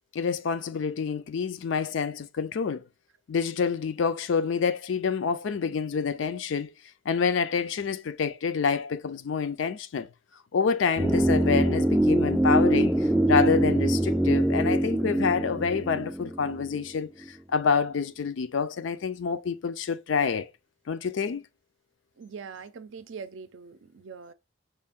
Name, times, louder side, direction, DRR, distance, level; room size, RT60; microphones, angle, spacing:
voice 1, 0.1-2.9 3.3-6.7 7.1-10.1 10.5-20.5 20.9-21.4, left 5 dB, 70° left, 0.4 m, -27 dB
sound 1, 11.0-17.0 17.2-17.3, right 1 dB, ahead, 0.3 m, -24 dB
voice 2, 22.2-24.3, right 5 dB, 65° right, 0.4 m, -42 dB
5.4 x 2.5 x 3.5 m
head